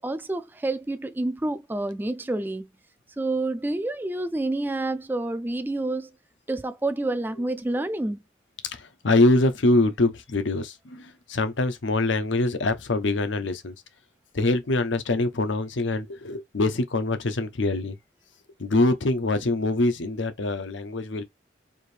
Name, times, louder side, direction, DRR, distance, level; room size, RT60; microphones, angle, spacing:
voice 1, 0.0-2.7 3.2-6.1 6.5-8.2, right 2 dB, 10° right, 0.3 m, -28 dB
voice 2, 8.7-13.7 14.3-18.0 18.6-21.2, left 2 dB, 85° left, 0.8 m, -24 dB
4.7 x 2.6 x 3.3 m
head